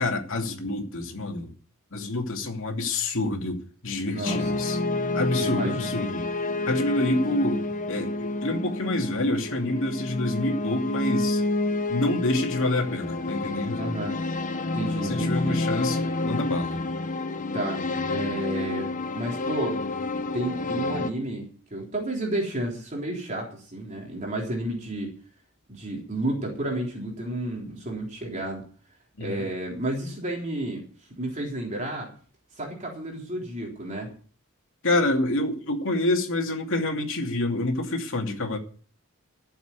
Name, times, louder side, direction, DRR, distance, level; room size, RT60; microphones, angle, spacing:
voice 1, 0.0-1.5 1.9-4.8 5.1-6.2 6.7-11.4 11.9-13.8 15.0-16.8 29.2-29.5 34.8-38.6, left 2 dB, 60° left, 2.7 m, -27 dB
voice 2, 4.1-4.6 5.4-6.0 13.8-14.2 14.7-15.6 17.5-17.8 18.1-19.8 20.3-25.1 25.7-28.6 29.2-30.8 31.2-32.1 32.6-34.1, right 1 dB, 35° right, 3.6 m, -31 dB
sound 1, 4.3-21.1, left 2 dB, 35° left, 1.0 m, -29 dB
14.0 x 7.4 x 8.2 m
head